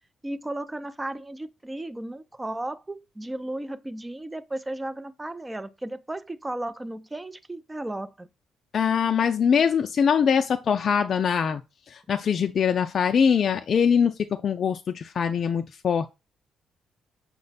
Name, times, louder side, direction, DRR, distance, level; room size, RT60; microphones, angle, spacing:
voice 1, 0.2-8.3, right 1 dB, 15° right, 0.4 m, -34 dB
voice 2, 8.7-11.6 11.9-14.1 14.4-16.1, left 7 dB, 55° left, 0.3 m, -22 dB
6.0 x 2.1 x 3.9 m
cardioid pair, 90°, 0 cm